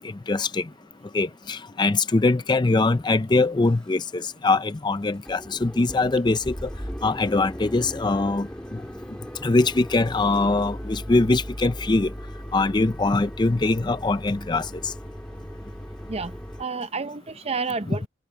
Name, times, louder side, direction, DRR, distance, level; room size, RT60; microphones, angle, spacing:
voice 1, 0.3-0.7 1.1-6.7 7.0-8.8 9.4-12.1 12.5-14.9 17.9-18.0, left 3 dB, 20° left, 0.4 m, -22 dB
sound 1, 3.0-3.1 3.6-4.0 4.3-4.4 4.7-4.8 5.1-16.6, equal, 5° left, 2.8 m, -38 dB
voice 2, 16.1-18.1, right 4 dB, 30° right, 0.8 m, -30 dB
head